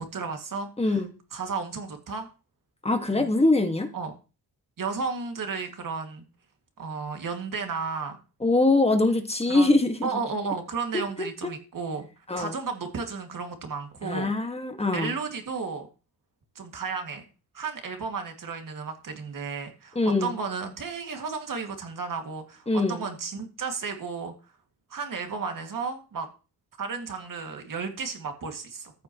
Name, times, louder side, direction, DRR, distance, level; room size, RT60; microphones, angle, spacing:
voice 1, 0.1-1.0 1.3-2.3 3.1-3.3 3.9-4.1 4.8-6.2 6.8-8.2 9.5-12.1 12.4-14.3 14.9-15.9 16.6-17.2 17.5-24.3 24.9-26.3 26.8-28.9, right 5 dB, 55° right, 5 dB, 2.3 m, -33 dB
voice 2, 0.8-1.1 2.8-3.9 8.4-10.1 10.9-11.0 11.4-11.5 12.3-12.5 14.0-15.2 20.0-20.4 22.7-23.0, left 2 dB, 15° left, 5 dB, 1.8 m, -23 dB
14.0 x 8.3 x 3.1 m, 0.33 s
cardioid pair, 95°, 39 cm